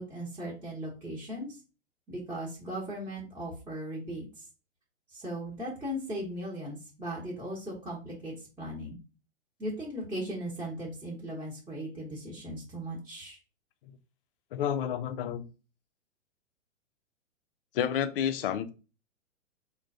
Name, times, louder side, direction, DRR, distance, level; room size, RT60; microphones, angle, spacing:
voice 1, 0.0-1.6 2.1-4.4 5.1-9.0 9.6-13.4, equal, 5° right, 0.9 m, -38 dB
voice 2, 14.5-15.4 17.7-18.7, left 9 dB, 50° left, 0.5 m, -30 dB
3.7 x 2.2 x 2.6 m
hypercardioid pair, 120°, 37 cm